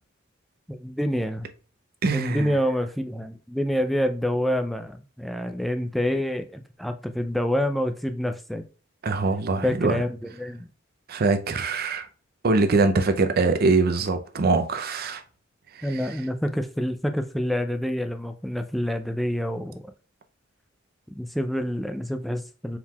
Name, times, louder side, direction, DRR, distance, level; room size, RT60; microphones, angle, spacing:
voice 1, 0.7-1.5 2.1-8.6 9.6-10.7 15.8-19.8 21.2-22.8, equal, ahead, 0.3 m, -27 dB
voice 2, 2.0-2.5 9.0-10.0 11.1-12.1 12.4-15.2, right 3 dB, 50° right, 0.5 m, -23 dB
4.5 x 3.6 x 2.3 m
head